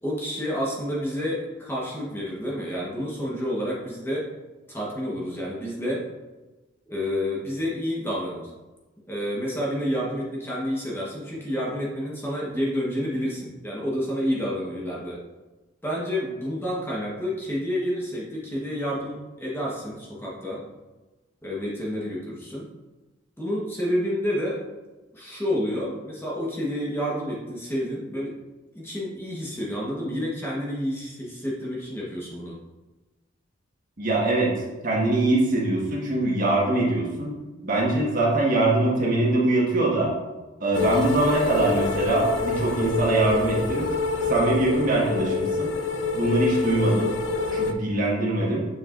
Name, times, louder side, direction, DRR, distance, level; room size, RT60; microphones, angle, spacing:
voice 1, 0.0-4.3 4.7-6.1 6.9-8.5 9.1-15.2 15.8-20.6 21.4-22.7 23.4-24.6 25.1-28.4 28.7-32.6, equal, 10° left, -5 dB, 1.1 m, -29 dB
voice 2, 34.0-34.5 34.8-37.3 37.6-40.1 40.6-43.9 44.3-45.7 46.1-47.1 47.5-48.7, right 2 dB, 45° right, -4 dB, 1.5 m, -23 dB
sound 1, 40.7-47.7, left 4 dB, 65° left, 0.5 m, -27 dB
7.3 x 5.8 x 2.5 m, 1.2 s
head